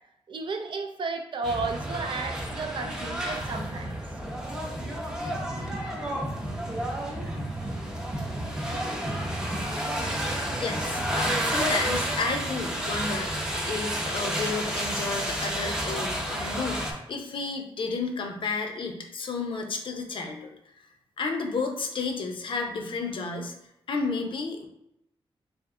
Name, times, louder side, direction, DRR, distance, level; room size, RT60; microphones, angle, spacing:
voice 1, 0.3-4.0, right 4 dB, 55° right, 5 dB, 0.4 m, -33 dB
sound 1, 1.4-16.9, right 1 dB, 5° right, 0.6 m, -30 dB
voice 2, 10.6-20.5 21.2-23.5 23.9-24.7, left 4 dB, 60° left, 3 dB, 0.6 m, -32 dB
3.5 x 2.6 x 3.6 m, 0.81 s
wide cardioid pair, 155°, 10 cm